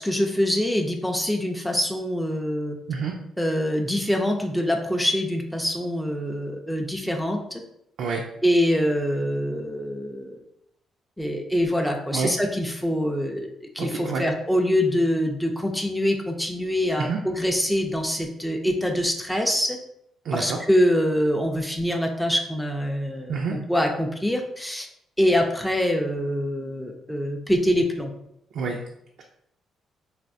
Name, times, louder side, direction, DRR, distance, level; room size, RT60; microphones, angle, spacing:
voice 1, 0.0-2.8 3.4-7.6 8.4-10.5 11.2-19.8 20.3-24.9 25.2-28.1, equal, ahead, 2 dB, 0.4 m, -24 dB
voice 2, 13.8-14.2 17.0-17.2 20.2-20.6 23.3-23.5 28.5-28.8, right 5 dB, 70° right, 0 dB, 0.4 m, -27 dB
3.2 x 2.3 x 2.6 m, 0.76 s
cardioid pair, 90°, 0 cm